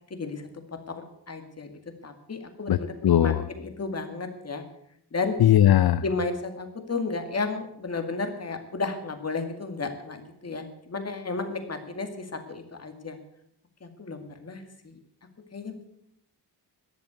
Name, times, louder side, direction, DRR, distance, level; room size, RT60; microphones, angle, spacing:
voice 1, 0.1-0.4 0.7-4.6 5.1-5.4 6.0-13.2 13.8-15.0 15.5-15.7, left 3 dB, 35° left, 7 dB, 2.1 m, -33 dB
voice 2, 3.0-3.4 5.4-6.0, left 11 dB, 60° left, 14 dB, 0.6 m, -18 dB
13.5 x 11.0 x 8.2 m, 0.74 s
wide cardioid pair, 170°, 42 cm